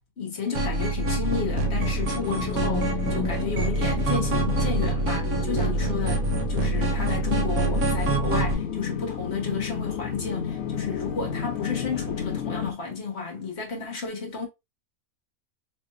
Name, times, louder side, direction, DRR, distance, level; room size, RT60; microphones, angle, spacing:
voice 1, 0.2-14.5, left 5 dB, 50° left, 1.4 m, -32 dB
sound 1, 0.5-8.5, right 2 dB, 80° right, 1.2 m, -26 dB
sound 2, 1.2-12.7, left 8 dB, 75° left, 1.0 m, -33 dB
sound 3, 1.6-8.0, left 2 dB, 10° left, 0.6 m, -37 dB
3.5 x 3.2 x 2.4 m
omnidirectional pair, 1.5 m